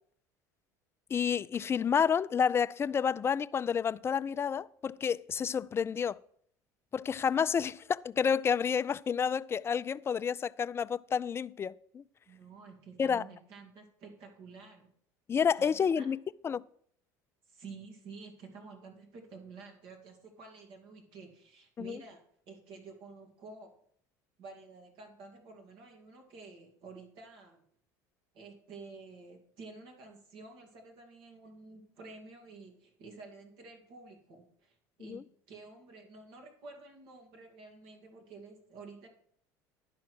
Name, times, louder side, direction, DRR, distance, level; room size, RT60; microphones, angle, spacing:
voice 1, 1.1-6.2 6.9-12.0 13.0-13.2 15.3-16.2 16.4-16.6 21.8-22.0 35.0-35.2, left 7 dB, 25° left, 0.3 m, -30 dB
voice 2, 12.3-14.9 15.6-16.1 17.5-23.7 24.4-27.6 28.3-39.1, right 4 dB, 65° right, 2.0 m, -51 dB
11.0 x 4.8 x 6.1 m
supercardioid pair, 90°, 9 cm